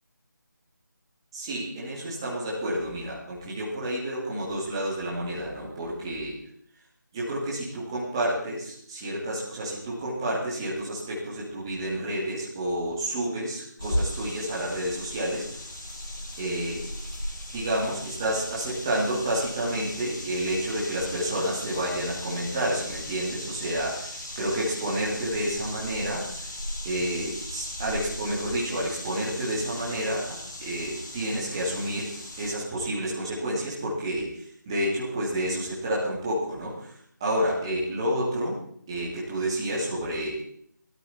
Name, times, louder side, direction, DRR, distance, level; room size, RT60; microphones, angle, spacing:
voice 1, 1.3-6.4 7.1-15.4 16.4-16.9 17.5-26.2 26.8-38.6 38.9-40.4, right 1 dB, 15° right, -6 dB, 2.5 m, -30 dB
sound 1, 13.8-32.6, left 1 dB, 85° left, 6.2 m, -37 dB
16.5 x 13.0 x 4.3 m, 0.64 s
figure-of-eight pair, 175°, 11 cm